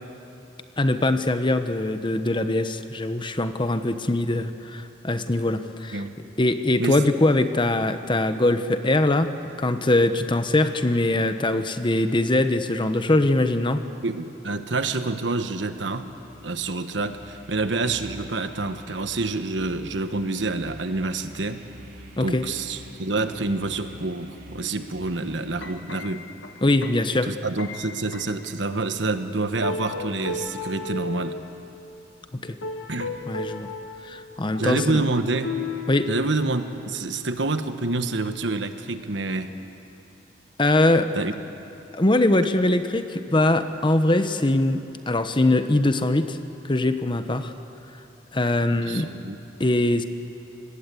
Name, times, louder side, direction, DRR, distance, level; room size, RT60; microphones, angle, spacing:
voice 1, 0.8-6.0 6.4-13.8 22.2-22.4 26.6-27.3 32.4-32.6 33.3-33.7 34.0-35.0 35.9-36.1 40.6-41.1 41.9-46.4 46.6-47.5 48.3-49.1 49.6-50.0, left 2 dB, 25° left, 9 dB, 1.0 m, -22 dB
voice 2, 14.0-16.1 16.4-21.6 22.2-26.2 27.1-31.4 32.9-33.1 34.6-35.6 36.1-39.5 41.1-41.3 48.9-49.4, right 3 dB, 75° right, 9 dB, 1.3 m, -27 dB
sound 1, 15.5-25.8, right 1 dB, 45° right, 2.8 m, -46 dB
sound 2, 25.6-28.5 29.1-29.2 29.6-31.5 32.5-34.1 34.5-36.9 37.3-37.7 38.3-38.4, left 3 dB, 90° left, 1.6 m, -35 dB
25.5 x 20.0 x 8.4 m, 2.9 s
head